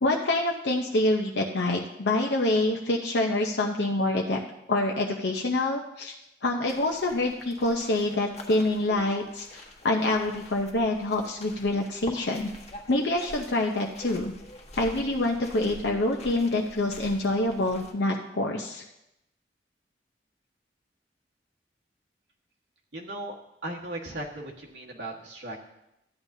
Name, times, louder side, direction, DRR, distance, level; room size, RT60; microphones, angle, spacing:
voice 1, 0.0-4.4 4.7-6.1 6.4-12.5 12.9-14.3 14.8-18.8, left 2 dB, 80° left, 0 dB, 0.7 m, -26 dB
sound 1, 6.7-17.9, left 1 dB, 40° left, 1.3 m, -46 dB
voice 2, 22.9-23.4 23.6-25.6, right 1 dB, 90° right, -2 dB, 1.6 m, -37 dB
13.5 x 9.8 x 2.7 m, 0.87 s
head